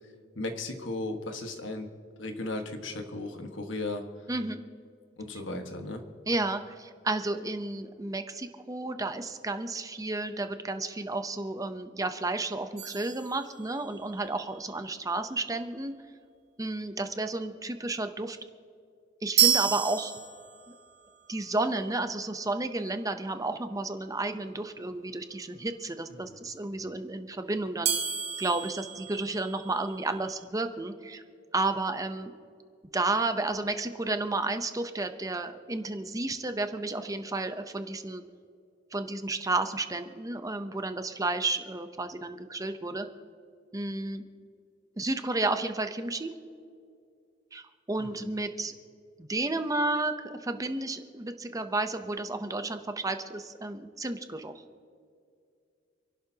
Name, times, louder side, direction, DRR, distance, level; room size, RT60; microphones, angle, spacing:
voice 1, 0.3-1.9 2.2-4.0 5.2-6.0 26.3-26.4 48.0-48.2, left 2 dB, 70° left, 5 dB, 1.5 m, -36 dB
voice 2, 4.3-4.6 6.3-15.9 16.6-18.4 19.2-20.1 20.7-20.8 21.3-28.0 28.4-31.2 31.5-32.3 32.9-38.2 38.9-43.1 43.7-44.2 45.0-46.3 47.5-48.7 49.2-54.5, right 2 dB, 20° right, 8 dB, 0.7 m, -32 dB
sound 1, 12.8-14.1 19.4-20.9 27.8-30.0, right 9 dB, 55° right, 1.2 m, -30 dB
28.5 x 11.5 x 2.9 m, 2.3 s
head